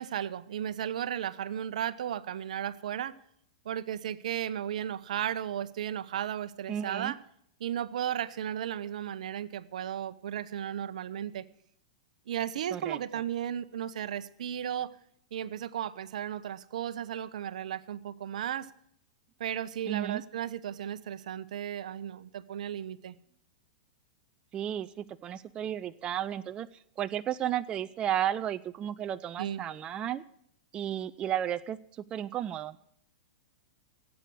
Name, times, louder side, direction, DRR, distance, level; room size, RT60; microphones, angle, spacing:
voice 1, 0.0-3.2 3.6-7.2 7.6-11.4 12.3-14.9 15.3-18.7 19.4-23.2 29.4-29.6, right 10 dB, 75° right, 15 dB, 0.8 m, -35 dB
voice 2, 6.7-7.1 12.7-13.0 19.9-20.2 24.5-26.7 27.0-30.2 30.7-31.8 32.1-32.8, right 10 dB, 25° right, 12 dB, 0.4 m, -33 dB
16.5 x 8.3 x 6.1 m, 0.70 s
hypercardioid pair, 130°, 4 cm